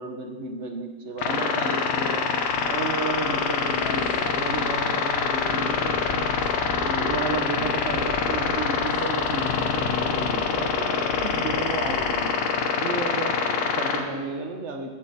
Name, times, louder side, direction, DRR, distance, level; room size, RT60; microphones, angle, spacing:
voice 1, 0.0-2.3 2.7-6.2 6.8-12.3 12.8-14.9, right 3 dB, 45° right, 4 dB, 0.9 m, -32 dB
sound 1, 1.2-14.0, left 5 dB, 85° left, 1.9 m, -25 dB
sound 2, 2.4-12.2, equal, 10° left, 3.6 m, -40 dB
14.0 x 7.7 x 4.1 m, 1.4 s
omnidirectional pair, 2.3 m